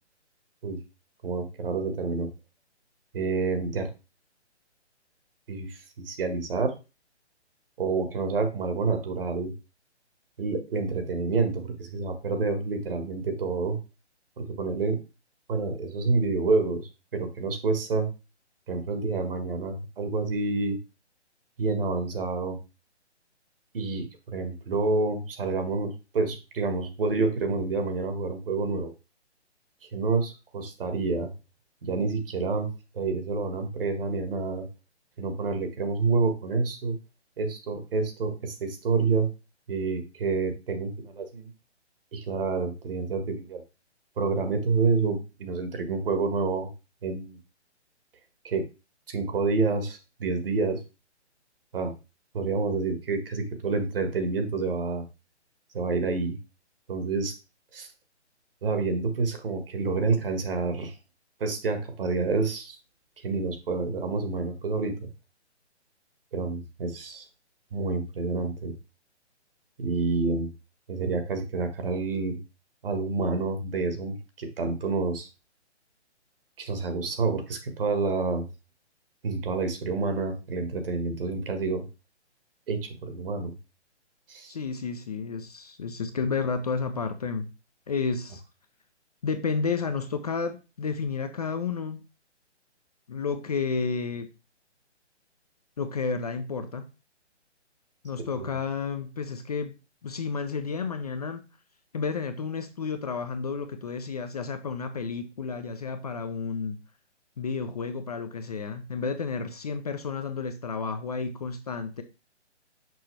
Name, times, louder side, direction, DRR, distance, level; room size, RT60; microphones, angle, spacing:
voice 1, 1.2-2.3 3.1-3.9 5.5-6.7 7.8-9.5 10.4-13.8 14.4-15.0 15.5-18.1 18.7-20.8 21.6-22.6 23.7-28.9 29.9-31.3 31.8-32.7 32.9-34.7 35.2-37.0 37.4-39.3 39.7-41.5 42.1-43.6 44.2-46.7 47.0-47.4 48.4-48.6 49.1-50.8 51.7-51.9 52.3-55.0 55.7-56.4 56.9-57.3 57.7-57.9 58.6-60.9 61.4-62.7 63.2-65.1 66.3-67.3 67.7-68.7 69.8-70.5 70.9-72.4 72.8-75.3 76.6-78.5 79.2-81.8 82.7-83.5 84.3-84.5 98.4-98.5, right 4 dB, 50° right, 1.6 m, -28 dB
voice 2, 84.5-87.5 87.9-88.4 89.2-92.0 93.1-94.3 95.8-96.9 98.0-99.7 100.0-101.5 101.9-106.8 107.4-112.0, left 5 dB, 35° left, 0.5 m, -31 dB
6.1 x 5.3 x 3.2 m
figure-of-eight pair, 140°, 35 cm